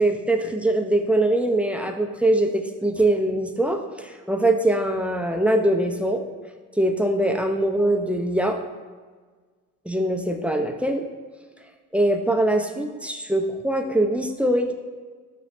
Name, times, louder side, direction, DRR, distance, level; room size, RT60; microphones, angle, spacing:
voice 1, 0.0-6.2 6.8-8.6 9.9-11.0 11.9-14.7, right 1 dB, 5° right, 4 dB, 0.3 m, -22 dB
5.9 x 2.0 x 4.1 m, 1.4 s
supercardioid pair, 60°, 36 cm